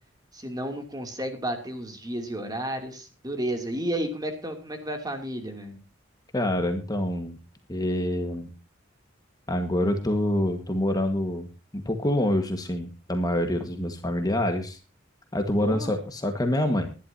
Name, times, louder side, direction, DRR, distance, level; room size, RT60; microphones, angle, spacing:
voice 1, 0.3-5.8 15.6-15.9, right 1 dB, 20° right, 5 dB, 2.7 m, -32 dB
voice 2, 6.3-7.4 7.7-8.5 9.5-11.5 11.7-14.8 15.3-16.9, left 1 dB, 20° left, 5 dB, 1.5 m, -26 dB
21.0 x 11.5 x 2.8 m, 0.31 s
head